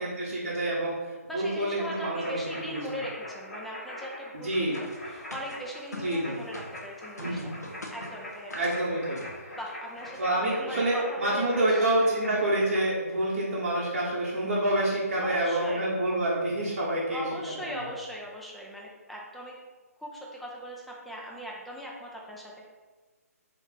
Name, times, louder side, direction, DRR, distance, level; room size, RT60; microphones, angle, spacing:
voice 1, 0.0-2.9 4.3-4.8 6.0-6.4 7.2-7.5 8.5-9.2 10.2-17.2 17.7-17.9, right 1 dB, 45° right, -8 dB, 0.9 m, -27 dB
voice 2, 1.3-7.5 7.9-8.9 9.6-11.9 15.2-15.9 17.1-19.6 20.0-22.7, equal, ahead, -3 dB, 0.3 m, -39 dB
sound 1, 1.8-12.8, left 1 dB, 60° left, 1.3 m, -43 dB
sound 2, 4.7-6.8 7.2-8.8 9.2-9.4 9.7-9.8 10.0-10.2, left 1 dB, 85° left, 0.7 m, -43 dB
3.1 x 2.8 x 3.6 m, 1.3 s
figure-of-eight pair, 140°, 9 cm